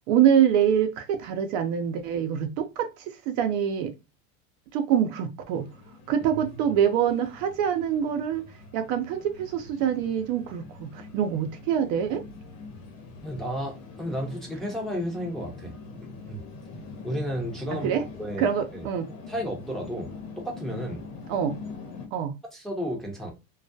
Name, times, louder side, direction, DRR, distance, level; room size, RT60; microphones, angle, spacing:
voice 1, 0.1-2.9 3.3-3.9 4.7-5.7 6.1-8.4 8.7-12.2 17.7-18.0 18.4-19.1 21.3-21.5 22.1-22.3, right 9 dB, 60° right, 0.6 m, -25 dB
sound 1, 5.5-22.1, left 4 dB, 85° left, 0.9 m, -44 dB
voice 2, 13.2-15.7 16.3-16.4 17.0-18.9 19.3-21.0 22.5-23.3, equal, ahead, 0.6 m, -33 dB
2.3 x 2.1 x 2.6 m
supercardioid pair, 115°, 41 cm